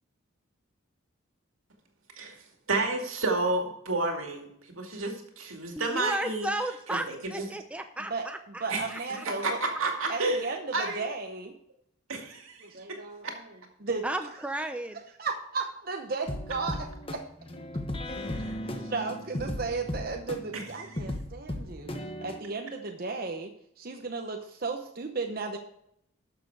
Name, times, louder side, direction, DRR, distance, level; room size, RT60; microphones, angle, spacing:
voice 1, 2.7-6.5 6.9-7.5 8.7-8.8 9.2-11.0 12.1-13.4 18.2-18.5 20.5-20.6, right 2 dB, 80° right, 2 dB, 2.4 m, -31 dB
voice 2, 5.7-8.6 8.9-9.2 14.0-15.0, right 1 dB, 5° right, 7 dB, 0.5 m, -34 dB
voice 3, 8.1-11.5 12.6-13.4 13.8-14.4 15.2-17.2 18.6-21.9 22.2-23.5 23.8-25.6, right 4 dB, 45° right, 3 dB, 0.9 m, -35 dB
sound 1, 16.3-22.4, left 1 dB, 25° left, 1.2 m, -36 dB
12.5 x 6.9 x 4.8 m, 0.74 s
head